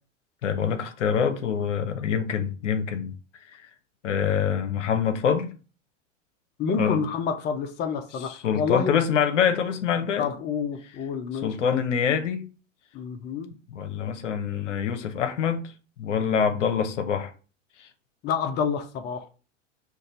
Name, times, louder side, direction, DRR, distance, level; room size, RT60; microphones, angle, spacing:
voice 1, 0.4-3.1 3.6-3.7 4.0-5.5 6.8-7.0 8.3-10.3 11.4-12.4 13.7-15.7 16.0-17.3 17.8-17.9, left 7 dB, 70° left, 0.8 m, -25 dB
voice 2, 6.6-9.1 10.2-11.8 12.9-13.5 18.2-19.3, left 6 dB, 25° left, 0.6 m, -28 dB
5.3 x 2.6 x 3.9 m
figure-of-eight pair, 95°, 38 cm